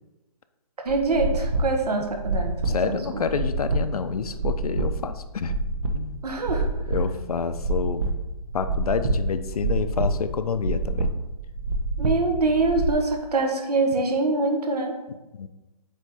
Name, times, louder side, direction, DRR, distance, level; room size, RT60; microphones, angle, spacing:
voice 1, 0.8-3.2 6.2-6.7 12.0-14.9, right 3 dB, 85° right, 3 dB, 1.4 m, -24 dB
sound 1, 0.9-12.9, right 2 dB, 60° right, 0.9 m, -27 dB
voice 2, 2.6-5.6 5.9-6.2 6.9-8.0 8.5-11.1 15.3-15.5, left 6 dB, 70° left, 10 dB, 0.6 m, -28 dB
8.2 x 3.1 x 4.2 m, 1.1 s
hypercardioid pair, 165°, 20 cm